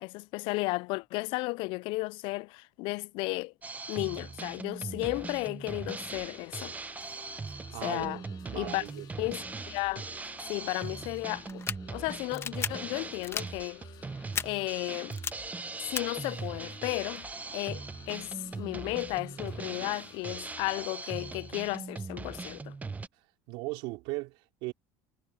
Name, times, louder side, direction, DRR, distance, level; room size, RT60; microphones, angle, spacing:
voice 1, 0.0-3.5 3.9-6.7 7.8-8.2 8.5-8.8 9.2-10.1 10.5-11.6 11.9-13.8 14.4-15.2 15.8-17.3 17.5-22.8, left 24 dB, 70° left, 0.4 m, -34 dB
Drum kit, 3.6-23.1, right 4 dB, 15° right, 1.0 m, -40 dB
sound 1, 6.1-20.9, left 11 dB, 45° left, 2.6 m, -54 dB
voice 2, 7.7-9.1 23.5-24.7, right 23 dB, 75° right, 2.9 m, -38 dB
sound 2, 11.5-11.8 12.3-12.7 13.2-13.4 14.3-14.4 15.1-15.3 16.0-16.1, left 6 dB, 25° left, 1.2 m, -32 dB
supercardioid pair, 120°, 9 cm